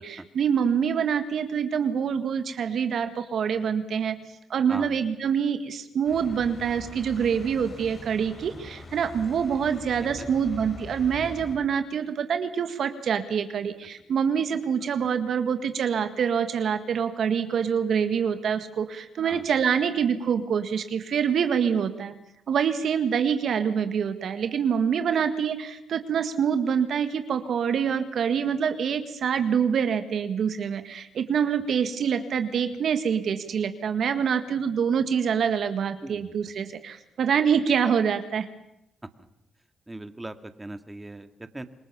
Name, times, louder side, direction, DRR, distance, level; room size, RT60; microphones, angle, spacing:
voice 1, 0.0-4.2 4.5-22.1 22.5-38.5, right 7 dB, 65° right, 9 dB, 1.9 m, -26 dB
sound 1, 6.0-11.6, left 2 dB, 40° left, 6.7 m, -43 dB
voice 2, 36.0-36.3 39.9-41.6, right 2 dB, 15° right, 8 dB, 2.1 m, -39 dB
27.5 x 21.5 x 7.2 m, 0.83 s
supercardioid pair, 55°, 0 cm